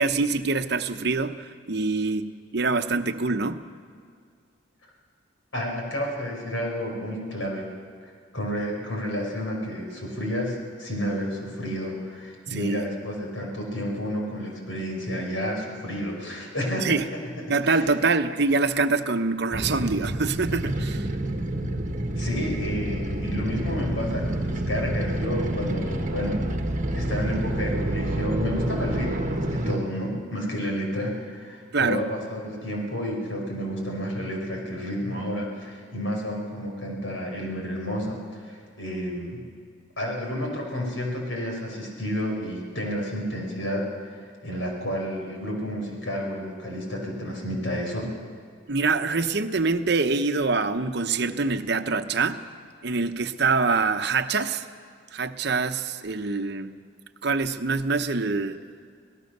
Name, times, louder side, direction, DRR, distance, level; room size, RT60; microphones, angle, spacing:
voice 1, 0.0-3.6 12.5-12.8 16.7-17.0 17.5-21.1 28.9-29.1 31.7-32.0 48.7-52.4 52.8-54.7 55.1-56.7 57.2-58.6, right 4 dB, 55° right, 8 dB, 0.9 m, -25 dB
voice 2, 5.5-7.7 8.0-17.9 22.2-26.4 26.9-39.4 40.0-48.1, equal, 80° left, 0 dB, 5.4 m, -31 dB
sound 1, 19.5-29.8, right 1 dB, 40° right, 1.4 m, -28 dB
26.0 x 17.5 x 6.7 m, 2.1 s
head